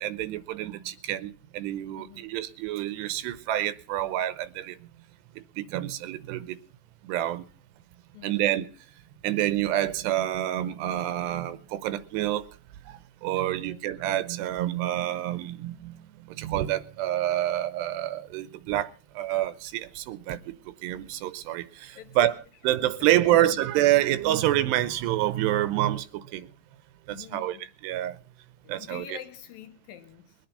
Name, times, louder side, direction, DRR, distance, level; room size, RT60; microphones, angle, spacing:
voice 1, 0.0-4.9 5.4-6.6 7.0-7.5 8.2-8.7 9.2-12.5 12.9-22.4 22.6-26.5 27.1-27.6 27.8-28.2 28.7-29.2, right 13 dB, 90° right, 3.0 m, -28 dB
voice 2, 2.0-2.3 8.1-8.6 13.4-13.8 22.0-22.4 22.8-23.5 27.1-27.7 28.6-30.3, left 10 dB, 70° left, 2.6 m, -46 dB
22.0 x 8.8 x 5.4 m
omnidirectional pair, 4.7 m